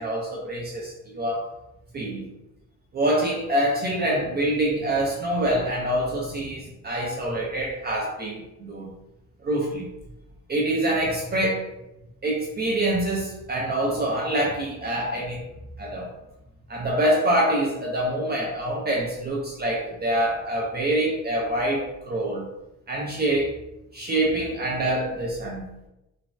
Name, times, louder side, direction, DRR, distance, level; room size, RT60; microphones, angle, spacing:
voice 1, 0.0-1.5 1.9-2.2 2.9-8.9 9.4-9.9 10.5-11.7 12.2-15.4 15.8-16.1 16.7-22.5 22.9-23.5 23.9-25.6, right 1 dB, 30° right, -3 dB, 0.4 m, -25 dB
3.2 x 2.0 x 2.5 m, 0.92 s
cardioid pair, 170°, 33 cm